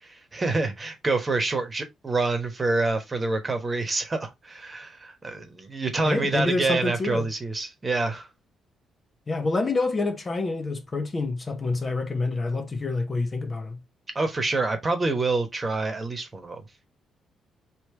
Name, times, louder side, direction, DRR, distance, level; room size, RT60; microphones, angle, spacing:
voice 1, 0.0-8.3 14.1-16.6, right 3 dB, 25° right, 1.2 m, -27 dB
voice 2, 6.0-7.3 9.3-13.8, left 3 dB, 30° left, 0.7 m, -27 dB
3.3 x 3.0 x 4.4 m
cardioid pair, 90°, 0 cm